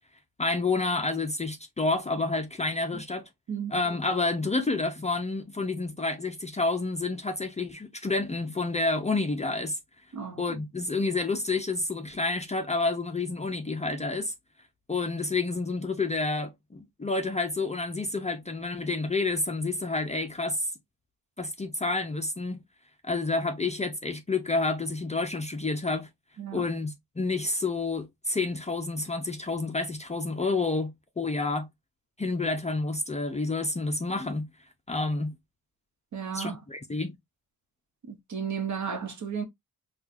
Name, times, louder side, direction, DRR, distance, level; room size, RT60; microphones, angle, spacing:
voice 1, 0.4-3.2 3.7-9.8 10.4-14.3 14.9-20.7 21.4-22.6 23.0-26.1 26.5-31.7 32.2-34.5 34.9-35.3 36.3-37.2, left 3 dB, 20° left, 0.5 m, -29 dB
voice 2, 26.4-26.7 36.1-36.6 38.1-39.4, right 7 dB, 50° right, 0.9 m, -33 dB
4.1 x 2.4 x 2.4 m
cardioid pair, 90°, 37 cm